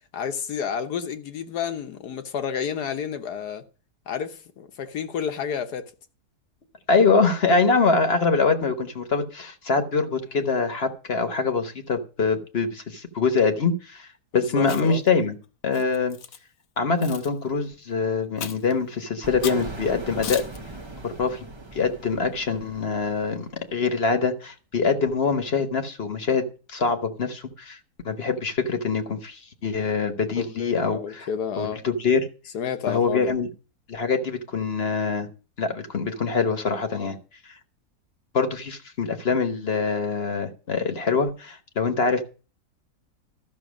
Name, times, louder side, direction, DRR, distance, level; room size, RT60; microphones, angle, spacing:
voice 1, 0.1-3.6 4.1-5.9 10.3-10.5 14.3-15.0 30.4-31.8 32.5-33.4 36.9-37.1, left 7 dB, 80° left, 1.6 m, -30 dB
voice 2, 6.9-14.1 14.3-15.3 15.6-16.2 16.8-20.4 21.0-21.5 21.7-27.8 28.0-31.3 31.6-32.3 32.9-33.5 33.9-35.3 35.6-37.2 38.3-42.2, left 4 dB, 45° left, 1.2 m, -24 dB
Chewing mastication, 14.6-15.1 15.7-16.4 17.0-17.3 18.4-18.7 19.4-19.7 20.2-20.6, left 8 dB, 65° left, 1.2 m, -35 dB
sound 1, 19.2-23.9, right 2 dB, 25° right, 0.7 m, -40 dB
13.0 x 6.2 x 6.2 m
omnidirectional pair, 1.7 m